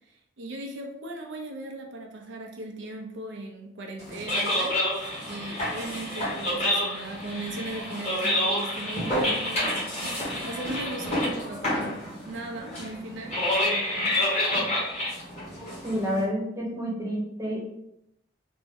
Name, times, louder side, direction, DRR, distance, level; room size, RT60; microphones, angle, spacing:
voice 1, 0.1-10.1 10.4-14.2, right 2 dB, 80° right, 2 dB, 0.5 m, -38 dB
sound 1, 4.0-16.2, left 1 dB, 35° left, 1.4 m, -28 dB
voice 2, 15.8-17.7, equal, 15° right, -4 dB, 0.8 m, -29 dB
3.4 x 2.1 x 3.4 m, 0.80 s
head